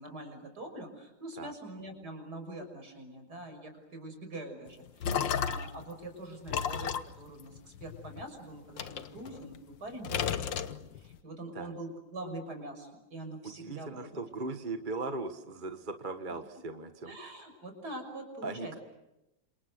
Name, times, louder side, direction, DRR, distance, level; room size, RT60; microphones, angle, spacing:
voice 1, 0.0-14.2 17.1-18.8, right 1 dB, 50° right, 5 dB, 6.7 m, -44 dB
sound 1, 4.7-5.8 6.5-8.2 8.8-9.7 10.0-11.2, left 8 dB, 70° left, 1.8 m, -33 dB
voice 2, 5.1-5.4 11.5-11.7 13.4-17.2 18.4-18.8, right 3 dB, 30° right, 7 dB, 1.3 m, -39 dB
29.0 x 27.5 x 6.5 m, 0.93 s
omnidirectional pair, 2.1 m